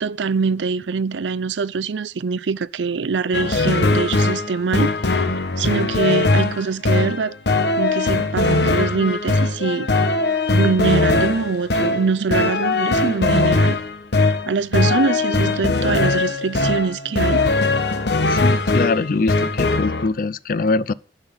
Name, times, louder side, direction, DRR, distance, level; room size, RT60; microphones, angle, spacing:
voice 1, 0.0-4.9 5.6-7.4 7.8-9.9 10.5-13.8 14.2-17.4, right 5 dB, 85° right, 0.5 m, -23 dB
sound 1, 3.3-20.1, left 2 dB, 70° left, 1.1 m, -20 dB
voice 2, 18.3-20.9, left 3 dB, 50° left, 0.5 m, -22 dB
10.5 x 5.8 x 7.9 m
head